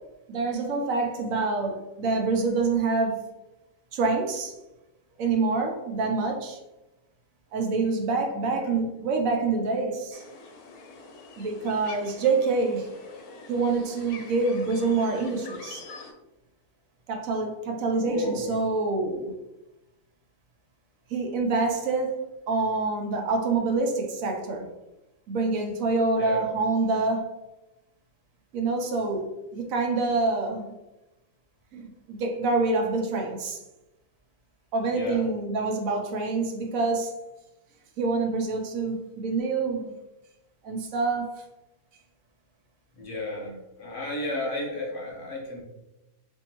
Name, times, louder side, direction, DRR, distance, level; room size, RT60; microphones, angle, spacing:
voice 1, 0.3-3.2 3.9-4.5 5.2-6.6 7.5-10.2 11.4-12.9 13.5-15.8 17.1-19.3 21.1-22.2 22.5-24.7 25.3-27.3 28.5-30.7 31.7-33.6 34.7-37.1 38.0-39.9 40.6-41.4, right 3 dB, 70° right, 2 dB, 1.0 m, -26 dB
voice 2, 8.4-8.8 18.0-18.7 26.2-26.4 34.9-35.2 43.0-45.6, left 2 dB, 55° left, -2 dB, 1.3 m, -33 dB
sound 1, 10.1-16.1, left 4 dB, 85° left, 1.2 m, -45 dB
4.4 x 2.6 x 2.9 m, 0.98 s
omnidirectional pair, 1.6 m